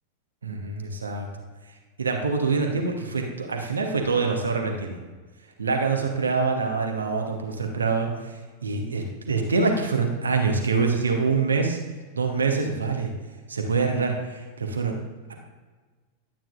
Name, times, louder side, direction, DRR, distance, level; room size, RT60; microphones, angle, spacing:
voice 1, 0.4-1.3 2.0-5.0 5.6-8.1 8.6-11.8 12.1-13.1 13.5-15.0, right 4 dB, 75° right, 2 dB, 1.1 m, -25 dB
12.0 x 8.8 x 2.5 m, 1.4 s
figure-of-eight pair, 90°, 0 cm